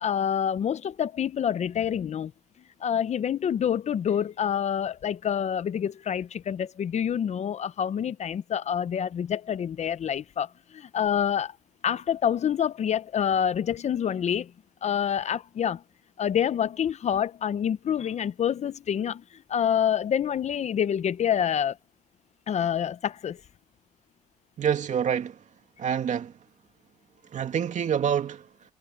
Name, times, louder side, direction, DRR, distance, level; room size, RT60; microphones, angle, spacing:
voice 1, 0.0-2.3 2.8-11.6 11.8-14.5 14.8-15.8 16.2-21.8 22.5-23.4, left 8 dB, 40° left, 0.7 m, -27 dB
voice 2, 24.6-25.4 25.8-26.3 27.3-28.5, right 8 dB, 45° right, 2.5 m, -26 dB
cardioid pair, 110°, 17 cm